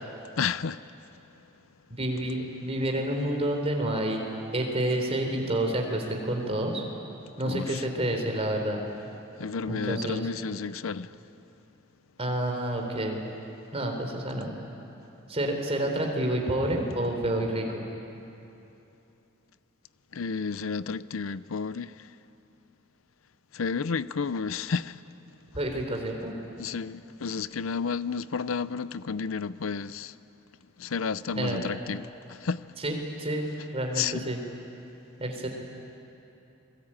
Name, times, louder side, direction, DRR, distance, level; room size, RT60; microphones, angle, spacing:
voice 1, 0.3-0.9 7.4-7.8 9.4-11.2 20.1-22.1 23.5-25.0 26.6-30.1 30.8-32.7 34.0-34.2, left 5 dB, 85° left, 0.6 m, -31 dB
voice 2, 1.9-4.2 4.5-6.8 7.4-8.8 9.7-10.3 12.2-13.2 13.7-14.5 15.3-17.8 25.5-26.3 31.4-31.6 32.8-34.4 35.2-35.5, right 1 dB, 30° right, 3.9 m, -29 dB
30.0 x 21.5 x 8.9 m
head